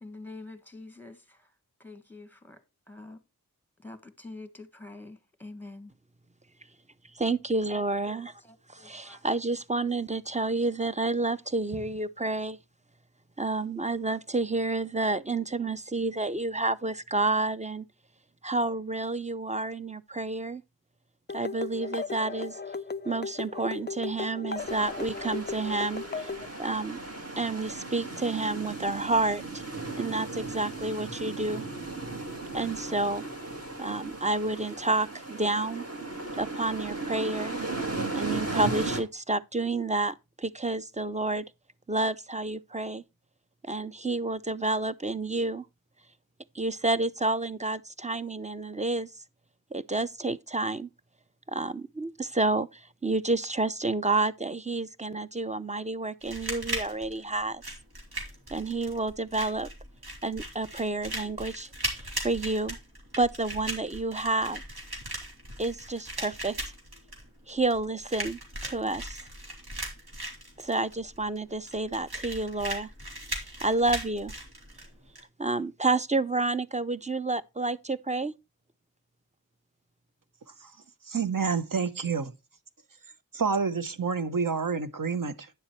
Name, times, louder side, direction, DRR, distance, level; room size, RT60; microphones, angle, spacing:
voice 1, 0.0-1.5 1.8-2.6 2.9-3.2 3.8-5.9 8.4-9.2, left 2 dB, 5° left, 1.5 m, -46 dB
voice 2, 7.2-8.3 8.7-12.6 13.4-17.9 18.4-20.6 21.3-22.6 23.0-26.3 26.6-27.0 27.4-29.6 30.0-31.7 32.5-33.2 33.8-35.9 36.4-37.6 38.1-41.5 41.9-43.0 43.6-45.7 46.5-49.1 49.7-50.9 51.5-57.6 58.5-59.7 60.2-61.7 62.2-62.8 63.2-64.6 65.6-66.6 67.5-69.2 70.6-72.9 73.6-74.3 75.4-78.3, right 2 dB, 20° right, 0.6 m, -29 dB
sound 1, 21.3-26.5, left 4 dB, 30° left, 0.4 m, -36 dB
sound 2, 24.6-39.0, right 3 dB, 40° right, 2.2 m, -36 dB
sound 3, 56.2-75.2, right 1 dB, 90° right, 2.9 m, -38 dB
voice 3, 81.1-82.3 83.3-85.5, right 5 dB, 60° right, 1.0 m, -28 dB
9.8 x 7.0 x 3.1 m
wide cardioid pair, 40°, 37 cm